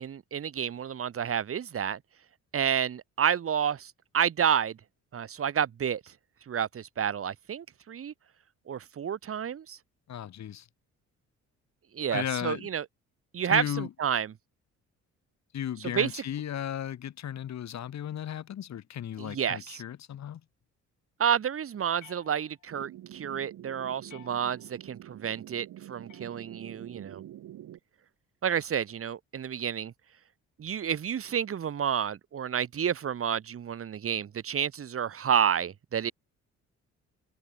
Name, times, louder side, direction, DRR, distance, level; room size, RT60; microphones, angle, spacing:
voice 1, 0.0-2.0 2.5-4.8 5.1-6.1 6.5-8.1 8.7-9.8 11.9-12.8 13.3-14.3 15.8-16.2 19.2-19.8 21.2-27.2 28.4-29.9 30.6-36.1, right 8 dB, 45° right, 1.5 m, -30 dB
voice 2, 10.1-10.7 12.1-12.7 13.5-13.9 15.5-20.4, left 10 dB, 65° left, 3.3 m, -35 dB
sound 1, 22.0-22.9 24.1-24.9 26.1-26.9, left 14 dB, 85° left, 7.9 m, -57 dB
sound 2, 22.7-27.8, right 13 dB, 75° right, 2.9 m, -47 dB
cardioid pair, 90°, 30 cm